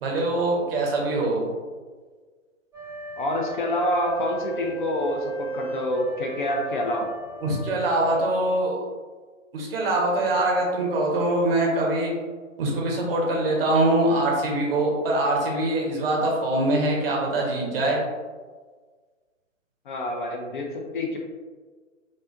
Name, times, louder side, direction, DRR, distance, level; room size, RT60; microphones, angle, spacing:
voice 1, 0.0-1.5 7.4-8.8 9.5-12.1 12.6-18.0, right 2 dB, 45° right, -1 dB, 1.1 m, -23 dB
sound 1, 2.7-8.2, right 3 dB, 10° right, 1.0 m, -36 dB
voice 2, 3.2-7.1 19.9-20.7 20.9-21.2, left 1 dB, 40° left, 1 dB, 0.6 m, -27 dB
5.3 x 2.7 x 2.5 m, 1.5 s
figure-of-eight pair, 125°, 39 cm